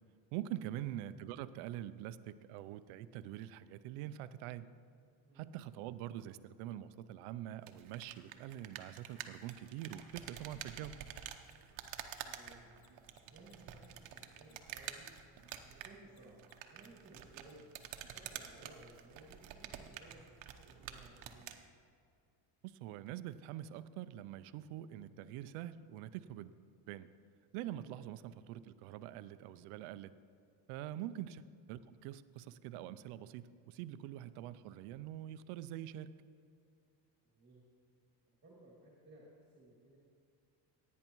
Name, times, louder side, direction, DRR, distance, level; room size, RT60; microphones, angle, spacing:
voice 1, 0.3-4.7 5.3-11.0 22.6-26.5 26.9-27.1 27.5-30.1 30.7-36.1, right 12 dB, 80° right, 14 dB, 0.6 m, -45 dB
sound 1, 7.6-21.6, right 10 dB, 60° right, 0.9 m, -49 dB
Mechanisms, 9.4-16.2 16.4-18.2, left 7 dB, 45° left, 1.3 m, -69 dB
voice 2, 12.3-15.1 15.7-17.6 18.0-21.5 27.9-28.0 30.9-31.1 37.2-37.6 38.4-40.0, right 2 dB, 20° right, -4 dB, 2.2 m, -59 dB
16.0 x 9.4 x 3.0 m, 2.4 s
cardioid pair, 125°, 50 cm